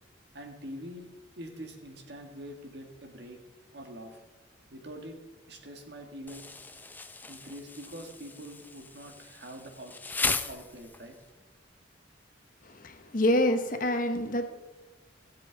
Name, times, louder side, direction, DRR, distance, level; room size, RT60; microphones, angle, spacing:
voice 1, 0.3-1.1 1.4-3.4 3.7-4.2 4.7-5.2 5.5-6.4 7.3-9.9 10.2-11.2, equal, 60° right, 3 dB, 1.8 m, -44 dB
Insect, 6.3-11.2, left 3 dB, 10° left, 0.5 m, -36 dB
voice 2, 12.8-14.5, left 1 dB, 50° left, 8 dB, 1.0 m, -26 dB
16.5 x 7.6 x 3.9 m, 1.2 s
head